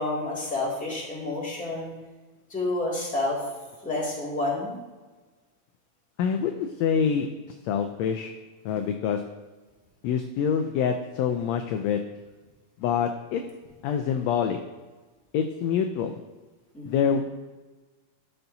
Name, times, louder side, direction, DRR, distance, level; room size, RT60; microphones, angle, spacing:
voice 1, 0.0-1.9 2.5-3.4 3.8-4.8 16.7-17.1, left 2 dB, 5° left, -6 dB, 1.6 m, -29 dB
voice 2, 6.2-7.3 7.6-8.3 8.6-9.2 10.0-12.0 12.8-13.4 13.8-14.6 15.3-16.2 16.8-17.2, left 7 dB, 80° left, 6 dB, 1.5 m, -26 dB
12.0 x 5.7 x 2.7 m, 1.3 s
omnidirectional pair, 3.4 m